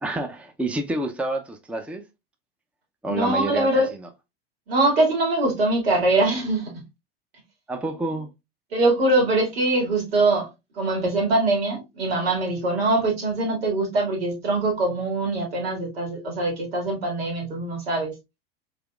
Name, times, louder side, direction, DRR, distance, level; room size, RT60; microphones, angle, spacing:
voice 1, 0.0-2.0 3.0-4.1 7.7-8.3, right 2 dB, 5° right, 0.5 m, -29 dB
voice 2, 3.1-3.9 4.7-6.7 8.7-10.5 10.8-18.1, right 2 dB, 85° right, 2.2 m, -23 dB
4.2 x 3.4 x 2.3 m
hypercardioid pair, 100°, 29 cm